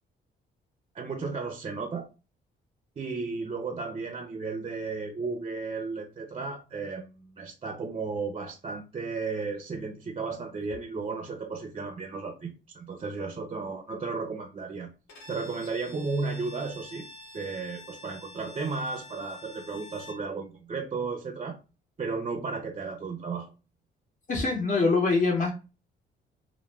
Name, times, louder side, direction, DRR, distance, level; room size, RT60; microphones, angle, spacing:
voice 1, 0.9-2.1 3.0-14.9 15.3-17.0 17.3-21.6 22.0-23.5, right 4 dB, 30° right, 0.5 m, -34 dB
Bowed string instrument, 15.1-20.3, left 1 dB, 80° left, 0.9 m, -48 dB
voice 2, 24.3-25.5, left 3 dB, 40° left, 0.7 m, -24 dB
2.2 x 2.1 x 3.2 m
cardioid pair, 90°, 20 cm